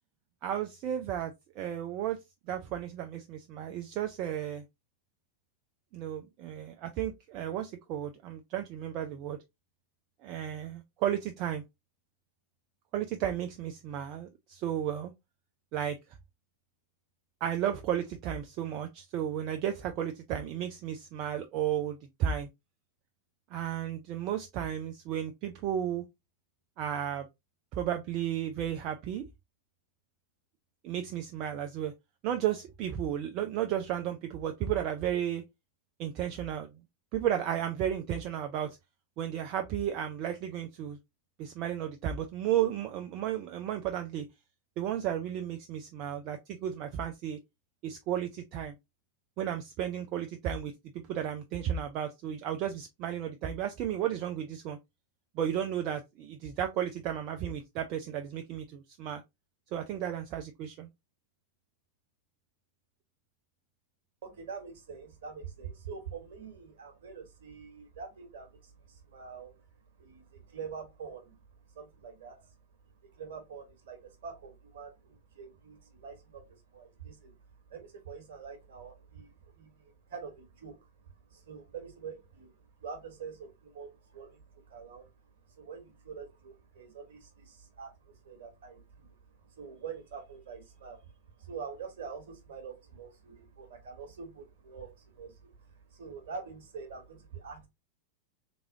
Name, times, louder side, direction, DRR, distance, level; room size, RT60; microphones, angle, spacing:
voice 1, 0.4-2.2 2.5-4.6 5.9-9.4 10.2-11.6 12.9-15.1 15.7-16.0 17.4-22.5 23.5-26.0 26.8-27.3 27.7-29.2 30.8-31.9 32.2-35.4 36.0-36.7 37.1-38.8 39.2-41.0 41.4-44.3 44.8-47.4 47.8-48.8 49.4-50.7 51.1-54.8 55.3-59.2 59.7-60.9, right 10 dB, 40° right, 0.4 m, -33 dB
voice 2, 64.2-69.6 70.0-71.4 71.7-72.5 73.1-77.3 77.7-80.8 81.3-82.5 82.8-85.1 85.6-89.2 89.6-91.1 91.4-97.7, right 6 dB, 55° right, 1.3 m, -45 dB
3.5 x 3.0 x 2.7 m
figure-of-eight pair, 90°, 0 cm